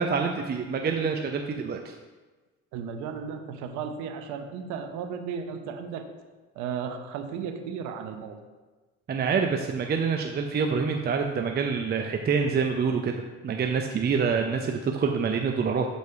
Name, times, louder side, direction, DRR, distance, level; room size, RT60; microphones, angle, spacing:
voice 1, 0.0-1.9 9.1-13.1 13.4-15.9, right 5 dB, 35° right, 3 dB, 0.6 m, -26 dB
voice 2, 2.7-6.1 6.6-8.4, right 6 dB, 75° right, 6 dB, 0.8 m, -35 dB
6.7 x 4.1 x 4.7 m, 1.3 s
supercardioid pair, 75°, 29 cm